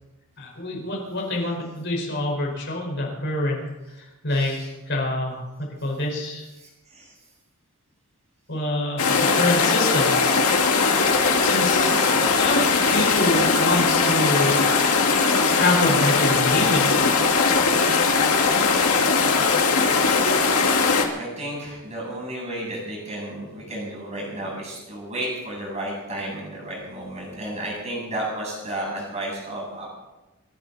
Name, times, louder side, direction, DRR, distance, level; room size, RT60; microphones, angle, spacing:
voice 1, 0.4-3.6 4.2-4.6 4.9-6.4 8.5-10.1 11.4-12.0 12.4-14.5 15.5-16.9, left 1 dB, 50° left, -1 dB, 5.1 m, -26 dB
voice 2, 4.3-4.7 6.6-7.1 12.0-12.4 12.8-13.5 14.6-14.7 19.8-20.4 21.1-29.9, right 1 dB, 30° right, -3 dB, 7.8 m, -33 dB
Small waterfall, 9.0-21.0, left 4 dB, 80° left, 2.2 m, -20 dB
27.5 x 11.5 x 4.2 m, 1.0 s
head